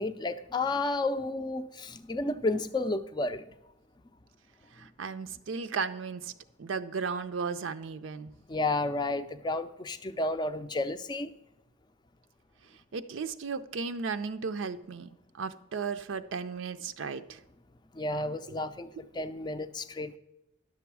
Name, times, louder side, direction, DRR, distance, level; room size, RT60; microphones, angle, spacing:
voice 1, 0.0-3.4 8.5-11.3 17.9-20.2, left 2 dB, 20° left, 11 dB, 0.4 m, -32 dB
voice 2, 4.7-6.3 6.6-8.3 12.9-15.1 15.3-17.4, right 5 dB, 75° right, 9 dB, 0.5 m, -35 dB
10.5 x 7.0 x 4.7 m, 0.93 s
head